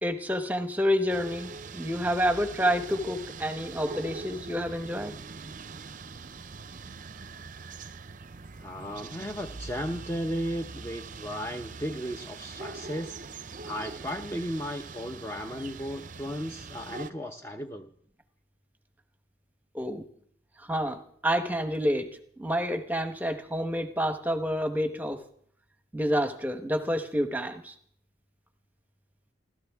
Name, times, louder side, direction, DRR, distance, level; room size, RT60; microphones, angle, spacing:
voice 1, 0.0-5.1 19.7-20.0 20.6-22.1 22.4-25.2 25.9-27.7, equal, 10° right, 8 dB, 1.0 m, -28 dB
sound 1, 1.1-17.1, right 4 dB, 40° right, 0.6 m, -43 dB
voice 2, 8.6-13.2 13.6-17.9, equal, 15° left, 5 dB, 0.7 m, -35 dB
29.0 x 13.0 x 3.5 m, 0.64 s
head